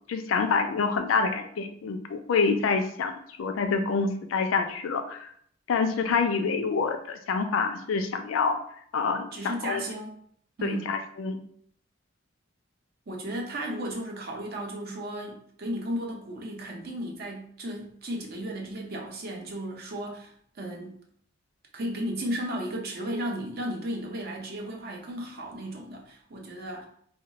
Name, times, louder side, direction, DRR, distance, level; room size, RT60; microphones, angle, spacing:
voice 1, 0.1-5.3 5.7-8.6 8.9-9.3 9.6-9.8 10.6-11.4, left 5 dB, 90° left, 7 dB, 0.4 m, -27 dB
voice 2, 9.3-10.2 10.6-10.9 13.1-20.9 21.7-26.9, right 1 dB, 50° right, 1 dB, 0.6 m, -34 dB
2.3 x 2.1 x 3.8 m, 0.63 s
head